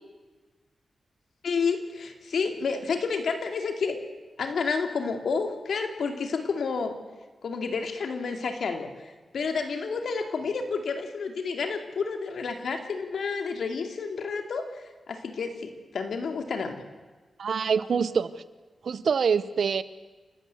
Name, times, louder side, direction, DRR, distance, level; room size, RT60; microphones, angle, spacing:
voice 1, 1.4-4.0 4.4-7.0 7.4-8.9 9.3-16.8, left 5 dB, 75° left, 5 dB, 2.6 m, -30 dB
voice 2, 17.4-18.3 18.8-19.8, right 6 dB, 70° right, 15 dB, 0.9 m, -25 dB
30.0 x 13.5 x 7.9 m, 1.3 s
wide cardioid pair, 95°, 0 cm